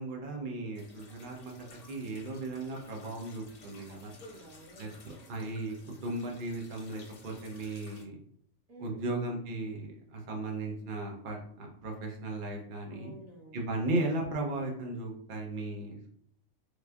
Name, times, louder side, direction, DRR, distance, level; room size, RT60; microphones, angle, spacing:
voice 1, 0.0-1.5 1.9-4.1 4.8-5.8 6.0-8.2 8.8-13.1 13.5-16.1, right 2 dB, 45° right, 0 dB, 0.8 m, -36 dB
sound 1, 0.7-8.0, left 3 dB, 50° left, 0.8 m, -55 dB
voice 2, 3.9-5.0 5.8-6.0 8.7-9.1 12.9-13.6, right 1 dB, 80° right, -3 dB, 1.4 m, -51 dB
3.9 x 3.3 x 2.3 m, 0.68 s
omnidirectional pair, 1.4 m